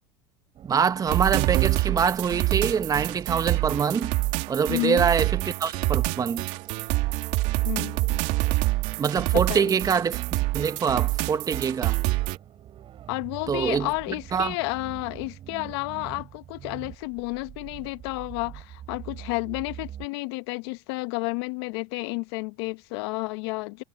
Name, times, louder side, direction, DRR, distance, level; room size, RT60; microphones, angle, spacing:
sound 1, 0.5-20.1, right 11 dB, 40° right, 4.4 m, -45 dB
voice 1, 0.7-4.1 4.5-6.5 9.0-12.0 13.5-13.9 14.3-14.5, right 6 dB, 25° right, 1.3 m, -25 dB
sound 2, 1.1-12.4, right 20 dB, 60° right, 2.3 m, -26 dB
voice 2, 4.7-5.1 7.6-8.2 9.5-9.7 13.1-23.8, left 26 dB, 70° left, 1.2 m, -31 dB
supercardioid pair, 105°, 14 cm